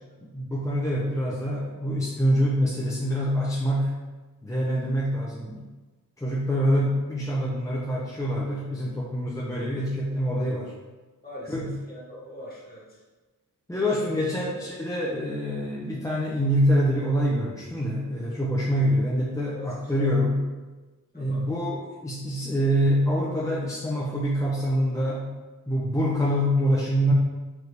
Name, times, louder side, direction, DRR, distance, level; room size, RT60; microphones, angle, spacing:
voice 1, 0.3-3.9 4.4-5.7 6.2-10.7 11.5-11.7 13.7-20.4 21.1-25.3 25.7-27.1, equal, 10° left, -5 dB, 0.5 m, -25 dB
voice 2, 11.2-13.0 14.0-14.1 14.6-14.7 18.8-18.9 19.6-20.1 21.1-21.5, equal, 25° left, -6 dB, 1.5 m, -42 dB
4.9 x 3.0 x 3.3 m, 1.2 s
wide cardioid pair, 95°, 34 cm